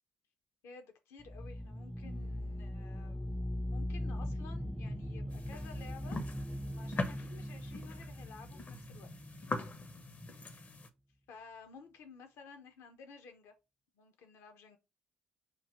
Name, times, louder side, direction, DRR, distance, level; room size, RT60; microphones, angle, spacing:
voice 1, 0.6-3.3 3.7-6.2 6.7-9.1 11.3-13.5 13.9-14.8, left 5 dB, 60° left, 0.9 m, -54 dB
sound 1, 1.2-9.9, equal, ahead, 0.3 m, -40 dB
sound 2, 5.3-10.9, left 2 dB, 35° left, 0.8 m, -42 dB
3.8 x 2.8 x 4.8 m
figure-of-eight pair, 50°, 5 cm